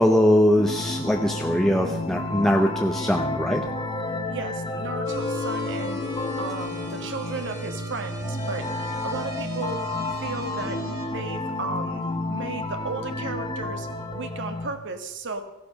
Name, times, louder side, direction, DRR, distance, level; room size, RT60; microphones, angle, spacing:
voice 1, 0.0-3.6, equal, ahead, 2 dB, 0.8 m, -21 dB
sound 1, 0.6-14.7, left 2 dB, 20° left, 1.5 m, -31 dB
voice 2, 4.3-6.0 6.4-9.9 10.2-10.8 11.1-12.0 12.3-15.4, right 3 dB, 55° right, 8 dB, 1.6 m, -34 dB
sound 2, 5.0-11.1, left 2 dB, 20° right, 2.6 m, -37 dB
16.0 x 11.5 x 6.5 m, 0.96 s
head